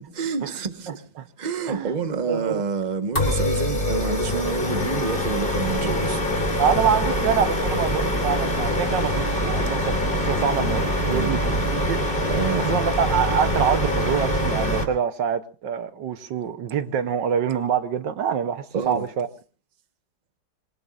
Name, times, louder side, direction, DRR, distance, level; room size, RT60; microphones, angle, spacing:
voice 1, 0.1-1.1 1.4-6.2 11.1-11.4 12.2-12.8 18.7-19.0, right 5 dB, 25° right, 1.3 m, -28 dB
voice 2, 0.9-1.3 1.7-2.0 2.3-2.6 6.6-10.0 10.3-12.0 12.7-19.3, right 7 dB, 75° right, 1.7 m, -25 dB
sound 1, 3.2-14.8, equal, 30° left, 3.1 m, -24 dB
25.5 x 22.5 x 2.5 m
omnidirectional pair, 2.0 m